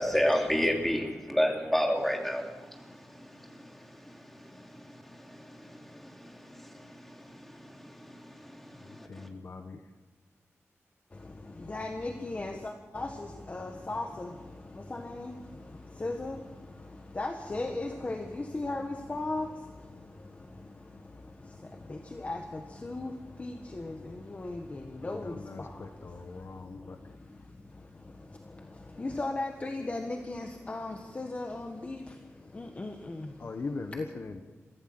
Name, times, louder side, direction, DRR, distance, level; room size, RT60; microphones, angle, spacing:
voice 1, 0.0-9.3, equal, 5° left, 1 dB, 3.0 m, -32 dB
voice 2, 8.8-9.8 25.0-27.2 33.4-34.4, left 3 dB, 50° left, 7 dB, 1.4 m, -40 dB
voice 3, 11.1-34.2, left 2 dB, 30° left, 4 dB, 1.5 m, -38 dB
24.0 x 16.0 x 7.8 m, 1.4 s
wide cardioid pair, 165°, 5 cm